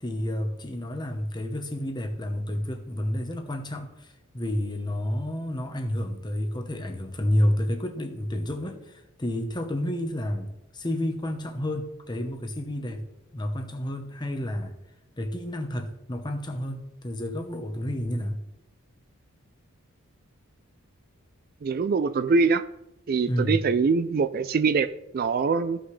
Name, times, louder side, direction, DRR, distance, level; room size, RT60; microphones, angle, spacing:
voice 1, 0.0-13.0 13.3-14.7 15.2-18.4 23.3-23.6, left 1 dB, 20° left, 0.9 m, -30 dB
voice 2, 21.6-22.6 23.1-25.8, right 4 dB, 45° right, 0.3 m, -23 dB
15.0 x 5.8 x 3.2 m
head